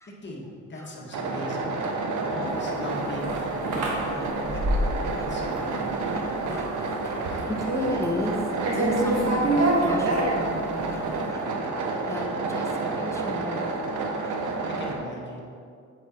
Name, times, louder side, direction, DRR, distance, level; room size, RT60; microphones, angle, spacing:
voice 1, 0.2-1.8 2.2-4.7 5.2-6.1 14.7-15.5, left 2 dB, 35° left, -2 dB, 1.6 m, -39 dB
sound 1, 1.1-14.9, right 3 dB, 80° right, 1.0 m, -30 dB
voice 2, 1.4-1.9 2.6-2.8 3.7-4.3 4.8-5.3 6.1-6.7 7.0-7.2 7.5-11.4 11.7-13.7 14.2-14.7, left 1 dB, 10° left, 0 dB, 1.1 m, -35 dB
sound 2, 2.7-5.2 5.5-6.0 6.4-6.7 7.0-8.4 8.6-10.9, right 1 dB, 55° right, 1.7 m, -26 dB
7.9 x 5.1 x 4.4 m, 2.4 s
cardioid pair, 90°, 30 cm